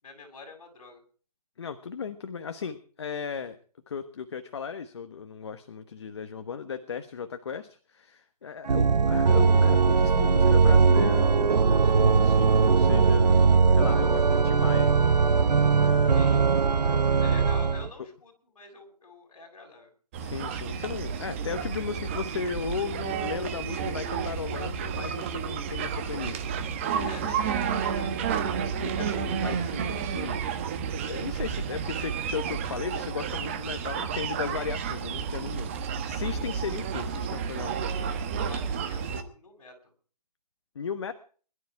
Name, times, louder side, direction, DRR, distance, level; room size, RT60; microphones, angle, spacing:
voice 1, 0.0-1.0 16.1-16.5 17.2-19.9 27.1-27.7 27.9-28.1 38.4-39.9, left 3 dB, 55° left, 3 dB, 7.3 m, -47 dB
voice 2, 1.6-3.6 3.9-13.4 13.7-15.1 15.8-17.4 20.2-26.5 26.8-27.3 28.5-30.6 31.0-37.8 40.7-41.1, left 6 dB, 40° left, 9 dB, 1.2 m, -36 dB
Organ, 8.7-17.9, right 5 dB, 75° right, 1.1 m, -20 dB
sound 1, 20.1-39.2, right 7 dB, 20° right, 1.2 m, -31 dB
22.0 x 12.5 x 4.8 m, 0.42 s
hypercardioid pair, 165°, 21 cm